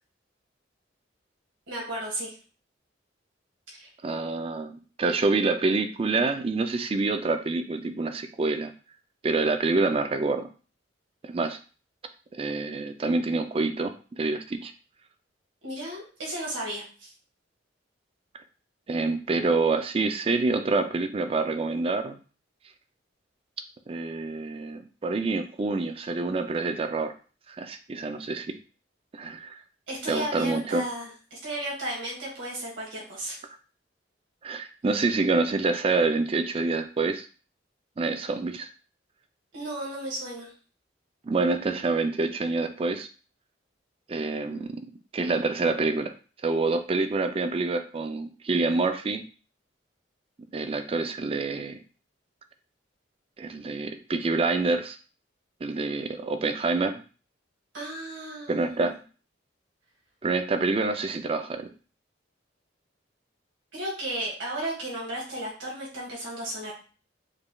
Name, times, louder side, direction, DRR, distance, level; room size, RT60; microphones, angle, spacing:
voice 1, 1.7-2.3 3.7-3.9 15.6-17.1 29.9-33.4 39.5-40.5 57.7-58.8 63.7-66.7, right 1 dB, 90° right, -4 dB, 1.6 m, -34 dB
voice 2, 4.0-8.7 9.2-10.5 11.2-11.6 12.3-14.7 18.9-22.2 23.9-27.1 27.5-28.6 29.1-29.6 30.1-30.8 34.4-37.3 38.0-38.7 41.2-43.1 44.1-44.8 45.1-46.1 46.4-49.2 50.5-51.8 53.4-55.0 55.6-57.0 58.5-59.0 60.2-61.7, right 3 dB, 30° right, 8 dB, 0.4 m, -27 dB
5.0 x 3.1 x 2.3 m, 0.37 s
head